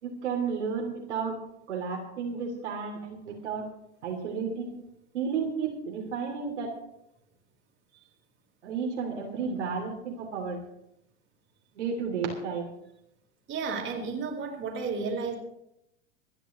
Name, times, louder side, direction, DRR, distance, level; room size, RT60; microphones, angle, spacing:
voice 1, 0.0-1.4 1.7-3.6 4.0-4.7 5.1-6.7 8.6-10.6 11.7-12.7, right 5 dB, 70° right, 0 dB, 3.0 m, -32 dB
voice 2, 13.5-15.4, right 5 dB, 30° right, 0 dB, 4.2 m, -32 dB
27.0 x 10.5 x 3.1 m, 0.80 s
figure-of-eight pair, 90°, 36 cm